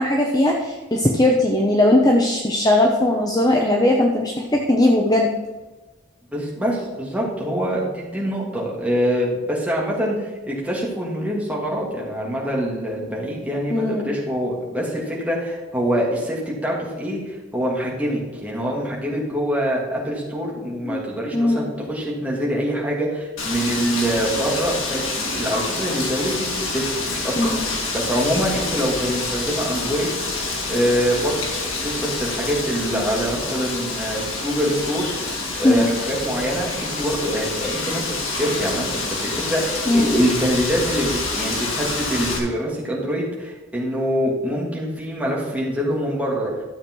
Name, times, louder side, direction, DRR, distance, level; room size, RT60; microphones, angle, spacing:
voice 1, 0.0-5.3 13.7-14.1 20.8-21.0 21.3-21.7 27.4-27.6 35.6-35.8 39.9-40.2, left 1 dB, 20° left, 0 dB, 0.9 m, -18 dB
voice 2, 6.3-46.5, equal, 5° right, -4 dB, 2.6 m, -25 dB
Wind, 23.4-42.4, left 3 dB, 80° left, 2.6 m, -27 dB
12.5 x 7.2 x 4.7 m, 1.2 s
head